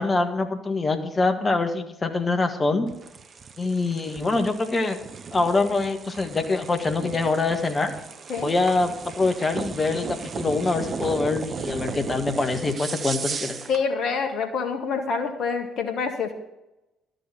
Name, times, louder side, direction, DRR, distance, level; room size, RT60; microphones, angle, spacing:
voice 1, 0.0-2.9 3.6-5.0 5.3-7.9 8.4-13.6, left 3 dB, 25° left, 6 dB, 1.6 m, -24 dB
sound 1, 2.9-13.9, right 5 dB, 40° right, 0.8 m, -36 dB
voice 2, 13.7-16.3, left 5 dB, 55° left, 5 dB, 1.7 m, -26 dB
13.0 x 6.7 x 8.0 m, 0.92 s
figure-of-eight pair, 50°, 0 cm